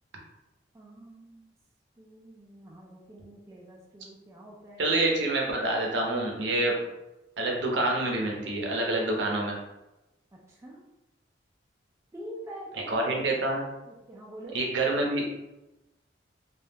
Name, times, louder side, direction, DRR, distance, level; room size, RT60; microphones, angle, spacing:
voice 1, 0.7-1.5 2.0-4.9 10.5-10.8 12.1-13.1 13.9-14.6, right 1 dB, 15° right, -3 dB, 0.3 m, -45 dB
voice 2, 4.8-6.8 7.4-9.6 12.7-13.6 14.5-15.3, right 2 dB, 75° right, 0 dB, 0.6 m, -27 dB
2.2 x 2.0 x 3.2 m, 0.97 s
head